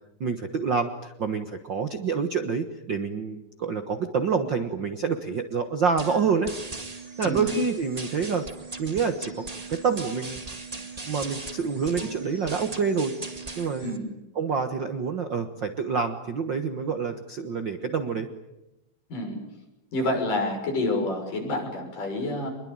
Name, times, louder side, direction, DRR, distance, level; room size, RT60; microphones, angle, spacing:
voice 1, 0.2-6.5 7.2-8.5 8.8-9.4 9.7-10.4 11.1-13.1 13.6-14.0 14.3-18.3, right 5 dB, 50° right, 7 dB, 1.4 m, -27 dB
sound 1, 6.0-14.0, right 3 dB, 20° right, 1.1 m, -38 dB
voice 2, 19.9-22.5, left 2 dB, 70° left, 3 dB, 7.9 m, -28 dB
26.0 x 22.0 x 8.9 m, 0.95 s
omnidirectional pair, 3.9 m